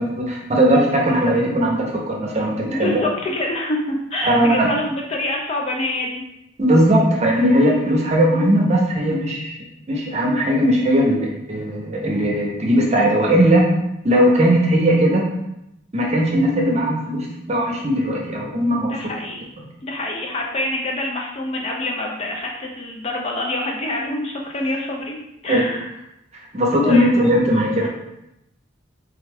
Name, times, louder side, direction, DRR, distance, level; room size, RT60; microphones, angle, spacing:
voice 1, 0.0-3.0 4.2-4.7 6.6-9.6 9.9-13.6 14.0-15.2 15.9-18.9 25.5-25.6 26.5-27.9, equal, 35° right, -2 dB, 0.6 m, -18 dB
voice 2, 2.7-6.2 18.8-19.5 19.8-25.2 25.4-25.9 26.7-27.4, left 1 dB, 30° left, 0 dB, 0.4 m, -26 dB
3.3 x 2.3 x 3.3 m, 0.85 s
head